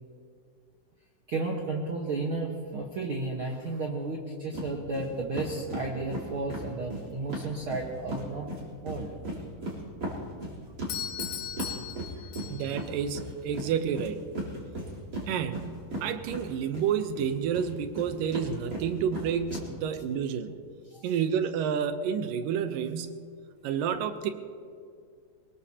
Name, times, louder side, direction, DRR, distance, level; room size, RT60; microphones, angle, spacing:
voice 1, 1.3-8.5 8.8-9.1 20.9-21.1, right 3 dB, 50° right, -1 dB, 1.7 m, -33 dB
sound 1, 4.5-4.7 4.9-5.1 5.3-8.2 8.5-16.9 17.2-19.6, right 1 dB, 30° right, 3.9 m, -36 dB
Doorbell, 10.9-12.9, left 9 dB, 60° left, 2.0 m, -37 dB
voice 2, 12.5-14.2 15.3-20.6 21.0-23.3 23.6-24.3, right 7 dB, 85° right, 9 dB, 2.6 m, -30 dB
23.0 x 20.5 x 2.9 m, 2.2 s
omnidirectional pair, 3.8 m